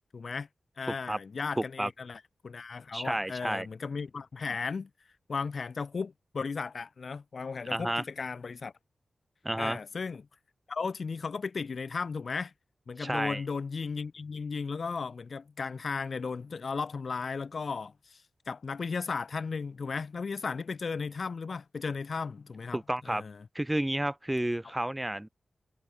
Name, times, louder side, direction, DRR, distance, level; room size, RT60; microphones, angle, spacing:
voice 1, 0.1-0.5 0.8-4.9 5.3-8.7 9.6-10.3 10.7-12.5 12.9-23.4, left 5 dB, 55° left, 1.0 m, -35 dB
voice 2, 1.6-1.9 2.9-3.7 7.7-8.0 9.4-9.8 13.0-13.4 22.7-23.2 23.5-25.3, right 1 dB, 10° right, 3.2 m, -31 dB
wide cardioid pair, 110°, 0 cm